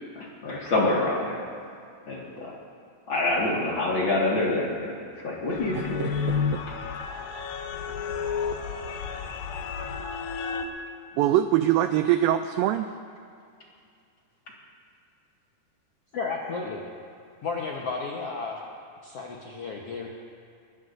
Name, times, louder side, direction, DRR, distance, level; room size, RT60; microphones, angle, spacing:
voice 1, 0.2-1.4 2.1-2.5 3.1-5.0 5.2-6.1, left 2 dB, 40° left, -4 dB, 1.9 m, -26 dB
sound 1, 5.5-10.7, left 6 dB, 75° left, 2.5 m, -31 dB
voice 2, 5.7-6.6 8.0-8.1 11.2-12.9, right 12 dB, 90° right, 8 dB, 2.0 m, -24 dB
voice 3, 16.1-16.8 17.4-18.6 19.0-20.1, left 4 dB, 90° left, -2 dB, 1.3 m, -33 dB
22.5 x 20.5 x 2.7 m, 2.3 s
omnidirectional pair, 4.6 m